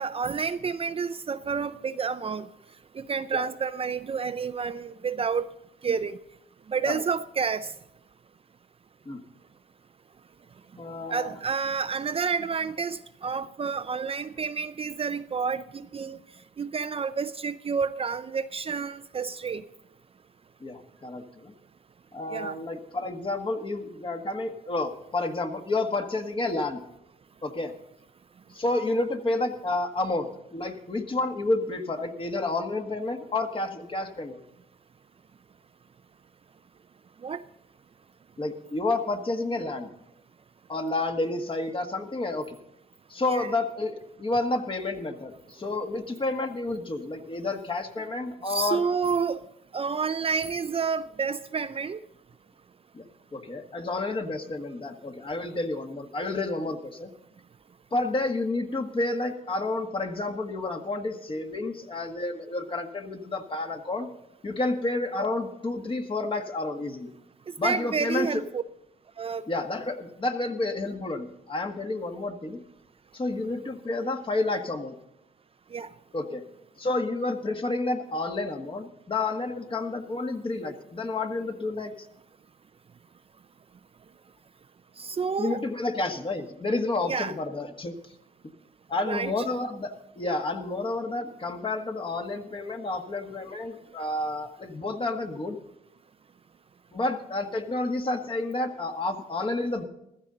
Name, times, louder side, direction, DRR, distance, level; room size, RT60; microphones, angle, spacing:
voice 1, 0.0-2.5 2.9-5.5 5.8-6.2 6.7-7.7 11.1-16.2 16.6-19.6 22.3-22.6 37.2-37.4 43.3-43.5 48.5-49.4 49.7-52.0 67.6-68.6 69.2-69.5 75.7-75.9 85.0-85.6 87.1-87.3 89.1-89.3, right 5 dB, 35° right, 0.5 m, -29 dB
voice 2, 10.8-11.3 20.6-21.5 22.1-26.8 27.4-27.7 28.5-34.4 38.4-39.9 40.7-42.6 43.1-48.8 52.9-53.1 53.3-57.1 57.9-64.1 64.4-67.1 67.6-68.4 69.5-72.6 73.1-74.9 76.1-76.4 76.8-81.9 85.4-87.9 88.9-95.6 96.9-99.8, left 2 dB, 30° left, 1.6 m, -30 dB
15.5 x 14.0 x 3.9 m
cardioid pair, 110°, 18 cm